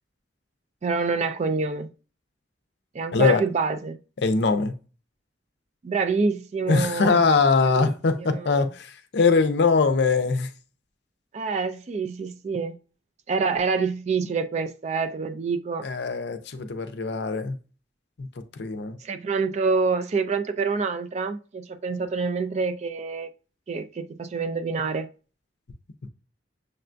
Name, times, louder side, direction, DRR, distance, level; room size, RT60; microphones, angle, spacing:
voice 1, 0.8-1.9 2.9-4.0 5.8-7.2 7.8-7.9 8.2-8.6 11.3-12.8 13.3-15.9 19.0-23.3 23.7-25.1, right 4 dB, 35° right, 0.3 m, -27 dB
voice 2, 3.1-3.4 4.2-4.7 6.7-10.5 15.8-17.6 18.2-18.3 18.6-19.0, left 4 dB, 60° left, 0.5 m, -22 dB
6.6 x 2.2 x 2.5 m
head